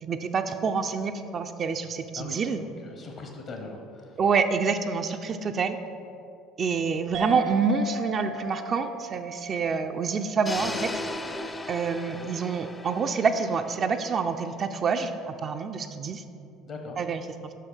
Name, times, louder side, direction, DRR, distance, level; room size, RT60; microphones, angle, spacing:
voice 1, 0.0-2.6 4.2-5.8 6.6-11.1 11.7-16.2 17.0-17.5, right 5 dB, 45° right, 6 dB, 0.4 m, -27 dB
voice 2, 2.8-4.2 12.0-12.3 16.7-17.0, left 3 dB, 55° left, 3 dB, 0.9 m, -40 dB
sound 1, 7.1-12.1, right 3 dB, 65° right, 0.9 m, -38 dB
sound 2, 10.4-14.5, left 2 dB, 20° left, 0.5 m, -37 dB
5.6 x 5.5 x 5.6 m, 2.6 s
hypercardioid pair, 65°, 0 cm